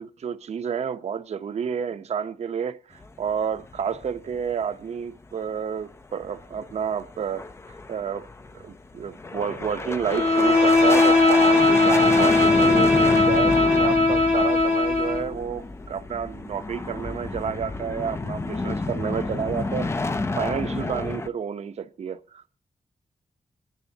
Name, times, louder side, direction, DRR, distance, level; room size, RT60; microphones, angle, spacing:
voice 1, 0.0-2.8 3.2-7.5 7.9-8.3 8.5-19.9 20.4-22.6, right 7 dB, 70° right, 0.8 m, -30 dB
sound 1, 3.0-4.6 4.9-5.0 5.4-5.5 5.9-21.3, left 3 dB, 25° left, 0.5 m, -30 dB
Bowed string instrument, 10.1-15.3, left 2 dB, 60° left, 1.9 m, -19 dB
26.0 x 10.0 x 2.8 m
wide cardioid pair, 175°, 12 cm